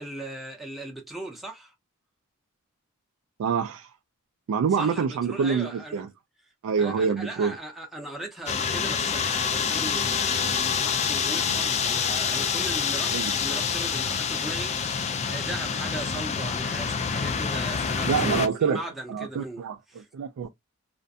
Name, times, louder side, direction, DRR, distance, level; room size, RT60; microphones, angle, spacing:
voice 1, 0.0-1.7 4.8-6.1 6.8-18.4 18.7-20.1, right 1 dB, ahead, 0.6 m, -38 dB
voice 2, 3.4-3.9 4.5-6.1 6.6-7.6 11.5-11.6 13.1-13.3 18.0-18.8 19.1-19.8 20.1-20.5, right 6 dB, 80° right, 0.3 m, -26 dB
sound 1, 8.5-18.5, left 6 dB, 30° left, 0.3 m, -27 dB
2.4 x 2.1 x 2.5 m
head